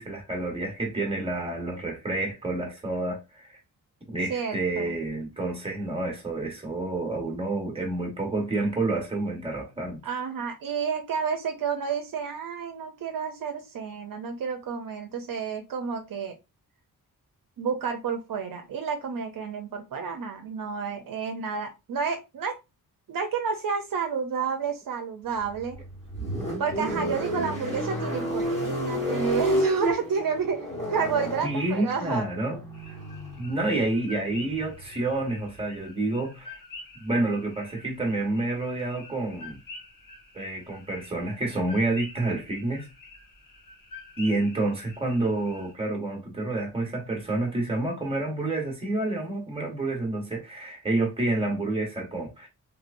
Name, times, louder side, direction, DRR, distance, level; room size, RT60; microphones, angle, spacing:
voice 1, 0.0-3.6 4.1-10.0 31.4-32.6 32.9-33.0 33.4-36.6 36.9-39.6 40.3-42.9 44.2-52.5, right 2 dB, 15° right, 1.2 m, -29 dB
voice 2, 4.3-5.0 10.0-16.3 17.6-22.6 23.1-25.8 26.6-32.2, right 6 dB, 65° right, 0.6 m, -30 dB
sound 1, 25.4-35.6, equal, 20° left, 1.4 m, -31 dB
sound 2, 32.7-45.7, left 3 dB, 65° left, 1.5 m, -47 dB
3.3 x 3.0 x 2.5 m
wide cardioid pair, 115°, 36 cm